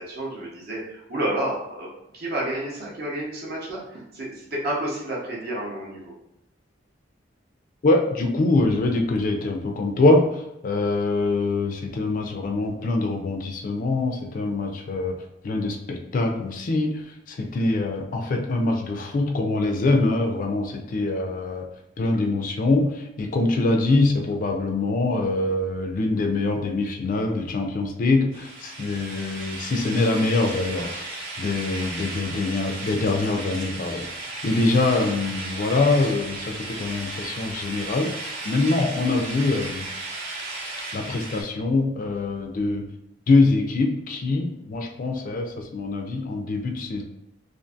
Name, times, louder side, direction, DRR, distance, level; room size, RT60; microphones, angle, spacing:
voice 1, 0.0-1.9 2.1-6.1, right 1 dB, 60° right, -4 dB, 0.8 m, -30 dB
voice 2, 7.8-10.3 10.6-15.2 15.4-17.0 17.3-21.7 22.0-38.1 38.5-39.9 40.9-42.9 43.3-47.0, left 2 dB, 45° left, 3 dB, 0.3 m, -24 dB
sound 1, 28.3-41.4, right 2 dB, 85° right, 1.1 m, -35 dB
2.5 x 2.4 x 2.4 m, 0.86 s
head